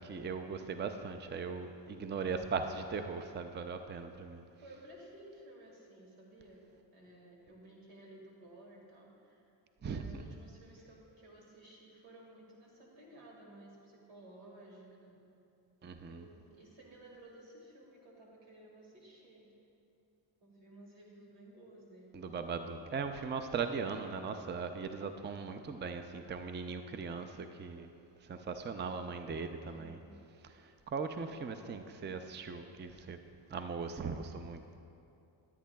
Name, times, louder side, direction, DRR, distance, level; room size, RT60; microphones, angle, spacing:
voice 1, 0.0-4.4 9.8-10.2 15.8-16.3 22.1-27.9 28.2-30.0 30.4-33.2 33.5-34.6, right 5 dB, 25° right, 8 dB, 0.5 m, -39 dB
voice 2, 4.6-9.5 9.8-15.2 16.1-19.5 20.4-22.2 29.6-30.2, right 1 dB, 85° right, -2 dB, 2.0 m, -55 dB
13.5 x 8.5 x 2.3 m, 2.6 s
supercardioid pair, 55°, 47 cm